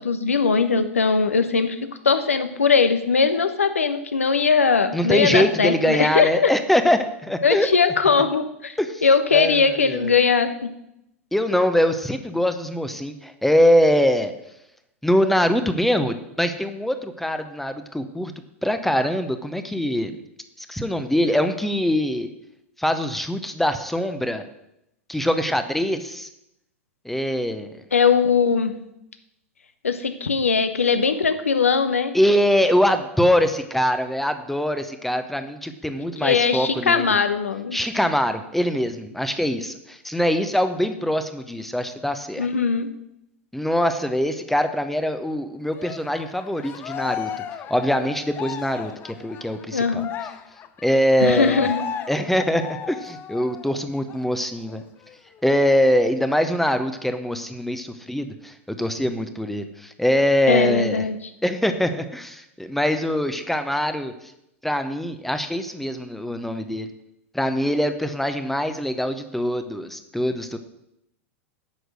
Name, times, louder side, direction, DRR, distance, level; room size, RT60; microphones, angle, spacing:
voice 1, 0.0-1.8 2.0-6.5 7.4-8.7 9.0-10.7 27.9-28.7 29.8-32.1 36.2-37.8 42.4-42.9 49.7-50.1 51.2-51.8 60.5-61.2, left 5 dB, 75° left, 10 dB, 0.9 m, -20 dB
voice 2, 4.9-7.7 8.8-10.2 11.3-14.3 15.0-18.3 18.6-20.2 20.6-22.3 22.8-24.4 25.1-26.3 27.0-27.7 32.1-37.2 37.7-42.5 43.5-47.3 47.7-50.0 50.8-51.7 52.1-54.8 55.4-61.0 61.4-64.1 64.6-66.9 67.3-70.6, equal, 5° left, 9 dB, 0.8 m, -23 dB
Cheering, 45.7-53.7 54.1-54.3 54.6-55.6, left 9 dB, 30° left, 0.6 m, -35 dB
9.5 x 6.4 x 6.3 m, 0.82 s
figure-of-eight pair, 90°, 7 cm